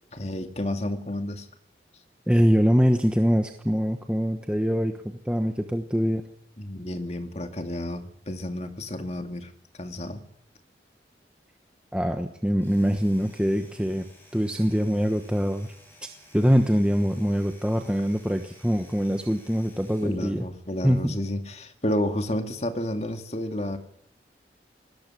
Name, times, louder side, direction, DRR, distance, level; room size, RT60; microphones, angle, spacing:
voice 1, 0.1-1.5 6.6-9.5 9.8-10.2 20.0-23.8, left 1 dB, 35° left, 6 dB, 2.3 m, -31 dB
voice 2, 2.3-5.0 5.3-6.2 11.9-14.0 14.3-15.7 16.3-20.4 20.8-21.2, equal, 5° right, 5 dB, 1.1 m, -23 dB
Domestic sounds home sounds, 12.5-20.3, left 1 dB, 10° left, 6.7 m, -54 dB
19.5 x 18.0 x 9.9 m, 0.73 s
head